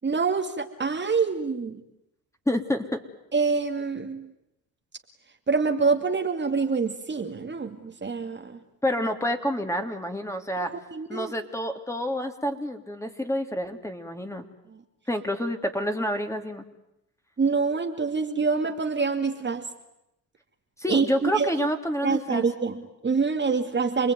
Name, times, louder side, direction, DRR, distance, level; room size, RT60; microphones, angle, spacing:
voice 1, 0.0-1.8 3.3-4.3 5.5-8.6 10.6-11.3 17.4-19.7 20.9-21.7 22.0-24.1, right 4 dB, 25° right, 4 dB, 2.5 m, -26 dB
voice 2, 2.5-3.0 8.8-10.7 11.1-14.4 15.1-16.6 20.8-22.4, equal, 5° left, 5 dB, 3.2 m, -28 dB
28.5 x 20.5 x 9.5 m, 0.87 s
supercardioid pair, 85°, 41 cm